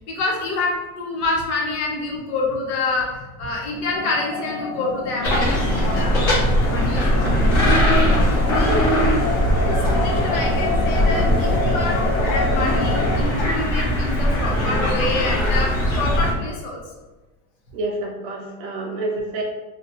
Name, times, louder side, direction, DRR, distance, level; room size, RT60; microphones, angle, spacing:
voice 1, 0.1-6.3 6.7-8.1 8.5-8.8 9.6-16.8, left 3 dB, 70° left, -2 dB, 1.3 m, -27 dB
sound 1, 3.9-13.2, left 3 dB, 90° left, 0.7 m, -28 dB
sound 2, 5.2-16.3, equal, 45° left, 1.5 m, -20 dB
voice 2, 6.1-6.5 8.6-8.9 17.7-19.4, right 2 dB, 35° right, 0 dB, 0.4 m, -28 dB
3.0 x 2.4 x 4.2 m, 1.2 s
cardioid pair, 175°, 43 cm